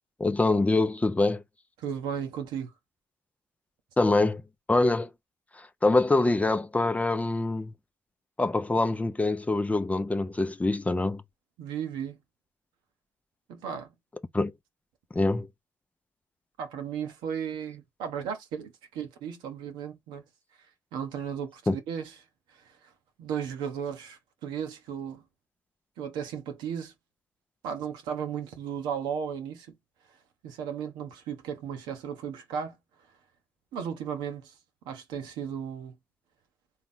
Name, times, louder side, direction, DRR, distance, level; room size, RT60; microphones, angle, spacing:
voice 1, 0.2-1.4 4.0-4.4 4.7-5.1 5.8-7.7 8.4-11.2 14.3-14.5 15.1-15.5 21.7-21.8, left 2 dB, 15° left, 0.6 m, -24 dB
voice 2, 1.8-2.7 11.6-12.2 13.5-13.9 16.6-20.2 20.9-22.1 23.2-25.2 26.0-26.9 27.6-29.7 30.4-32.8 33.7-34.5 34.9-35.9, right 8 dB, 70° right, 1.0 m, -35 dB
4.0 x 2.8 x 3.6 m
hypercardioid pair, 45°, 8 cm